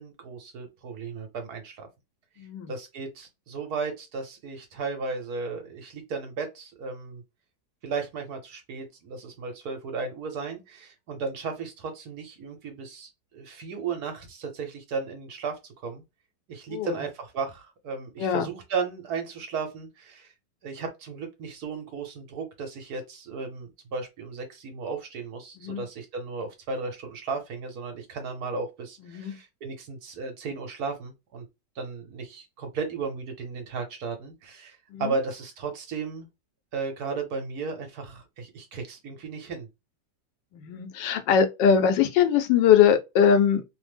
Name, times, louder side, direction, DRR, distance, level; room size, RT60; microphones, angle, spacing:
voice 1, 0.0-1.9 2.7-7.2 7.8-16.0 16.5-20.3 20.6-31.5 31.8-36.3 36.7-39.7, right 4 dB, 65° right, 1.2 m, -35 dB
voice 2, 2.4-2.7 16.7-17.0 18.2-18.5 25.6-25.8 29.0-29.4 34.9-35.2 40.5-43.6, left 8 dB, 90° left, 1.3 m, -22 dB
3.2 x 2.0 x 3.2 m
omnidirectional pair, 1.9 m